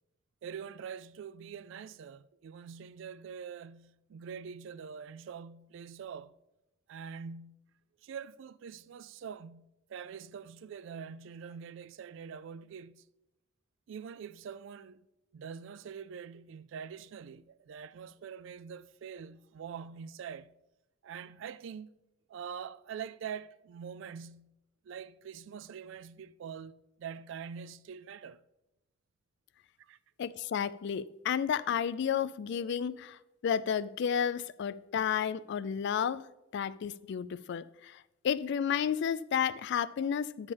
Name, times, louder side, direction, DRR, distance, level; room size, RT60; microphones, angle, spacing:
voice 1, 0.4-6.3 6.9-7.6 8.0-13.0 13.9-15.1 15.3-20.5 21.0-21.9 22.3-24.5 24.8-28.4 29.8-30.0, right 7 dB, 70° right, 0.3 m, -44 dB
voice 2, 30.2-36.3 36.5-40.5, left 8 dB, 60° left, 0.3 m, -32 dB
10.5 x 7.3 x 3.3 m
head